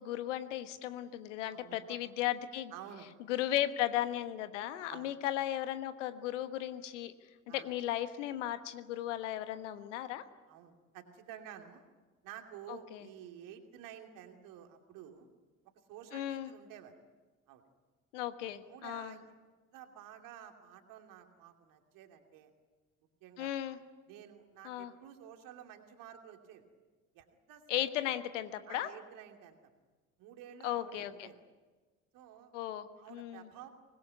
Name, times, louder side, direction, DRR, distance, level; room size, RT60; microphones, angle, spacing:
voice 1, 0.0-2.7 3.3-7.1 7.5-10.2 12.7-13.1 16.1-16.5 18.1-19.1 23.4-23.8 24.6-24.9 27.7-28.9 30.6-31.3 32.5-33.5, left 12 dB, 70° left, 11 dB, 1.4 m, -36 dB
voice 2, 1.5-2.0 2.7-3.1 4.9-5.1 7.5-7.7 10.5-11.8 12.2-15.3 15.9-16.9 17.5-17.6 18.7-19.3 19.7-22.5 23.2-23.6 24.1-26.6 27.1-27.9 28.7-29.6 30.2-31.4 32.1-32.5 33.0-33.7, right 10 dB, 60° right, 4 dB, 2.9 m, -51 dB
24.5 x 20.5 x 9.5 m, 1.4 s
figure-of-eight pair, 55°, 38 cm